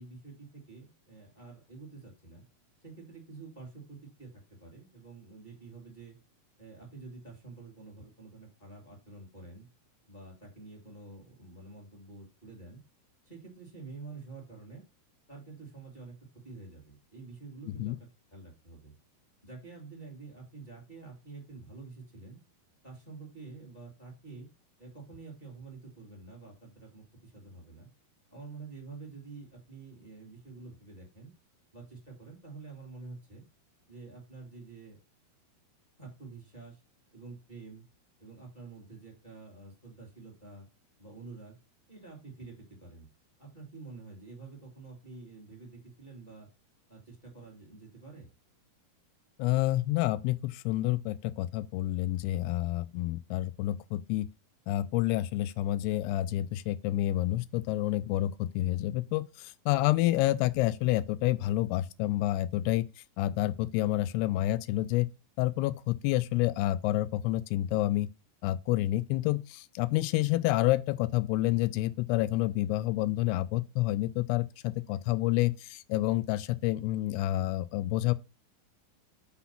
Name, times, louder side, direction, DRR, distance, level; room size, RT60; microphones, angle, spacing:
voice 1, 0.0-2.4 2.8-4.3 4.6-6.1 6.6-9.7 10.1-12.8 13.2-14.8 15.3-16.1 16.4-18.9 19.4-22.4 22.8-24.5 24.8-27.9 28.3-31.3 31.7-33.4 33.9-35.0 36.0-36.8 37.1-37.8 38.2-40.7 41.0-41.6 41.9-43.1 43.4-46.5 46.9-48.3, right 3 dB, 20° left, 1.1 m, -48 dB
voice 2, 49.4-54.3 54.7-62.9 63.2-65.1 65.4-68.1 68.4-78.1, left 16 dB, 90° left, 2.6 m, -29 dB
5.7 x 4.2 x 5.7 m
omnidirectional pair, 4.6 m